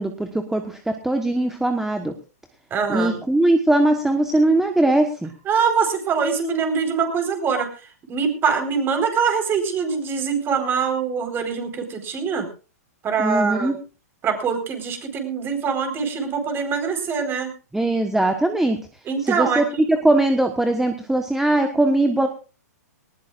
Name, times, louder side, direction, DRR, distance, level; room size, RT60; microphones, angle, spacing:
voice 1, 0.0-2.1 2.9-5.3 13.2-13.7 17.7-18.8 19.2-22.3, right 1 dB, 5° right, 6 dB, 1.3 m, -20 dB
voice 2, 2.7-3.2 5.5-12.5 13.0-13.8 14.2-17.5 19.1-19.6, right 6 dB, 25° right, 7 dB, 4.5 m, -23 dB
19.0 x 19.0 x 2.5 m, 0.35 s
hypercardioid pair, 125°, 9 cm